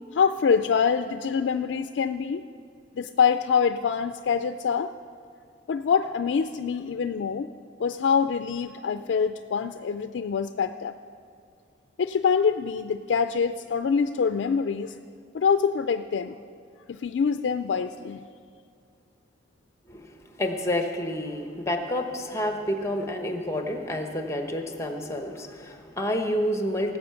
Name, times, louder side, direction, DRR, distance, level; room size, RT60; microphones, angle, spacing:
voice 1, 0.1-2.4 3.0-4.9 5.7-7.5 7.8-10.9 12.0-14.9 15.3-16.4 16.9-18.2, left 6 dB, 75° left, 9 dB, 0.4 m, -25 dB
voice 2, 19.9-27.0, left 1 dB, 15° left, 5 dB, 1.0 m, -29 dB
17.5 x 8.1 x 5.7 m, 2.3 s
head